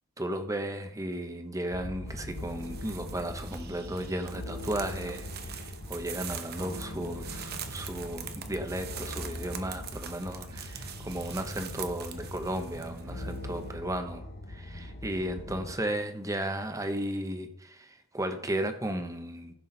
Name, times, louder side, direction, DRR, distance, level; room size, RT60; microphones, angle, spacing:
voice 1, 0.2-19.5, right 1 dB, 15° right, 7 dB, 1.0 m, -35 dB
sound 1, 1.7-15.8, left 1 dB, 55° left, 1.1 m, -42 dB
sound 2, 2.1-13.7, right 6 dB, 50° right, 1.0 m, -43 dB
15.0 x 6.0 x 4.0 m, 0.78 s
head